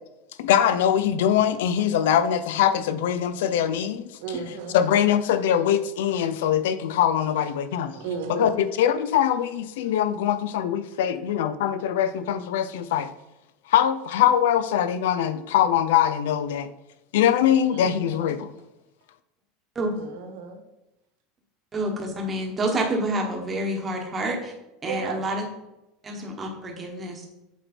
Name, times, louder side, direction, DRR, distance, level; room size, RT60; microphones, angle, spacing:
voice 1, 0.4-4.0 4.7-8.0 8.3-13.1 13.7-16.7 17.1-18.5, left 10 dB, 85° left, 12 dB, 0.5 m, -22 dB
voice 2, 4.2-4.8 7.9-8.6 17.7-18.4 19.9-20.6 24.8-25.2, right 5 dB, 70° right, 4 dB, 1.4 m, -34 dB
voice 3, 21.7-24.5 24.8-25.4 26.0-27.2, right 1 dB, 15° right, 1 dB, 1.2 m, -28 dB
8.1 x 4.4 x 4.4 m, 0.93 s
supercardioid pair, 175°, 0 cm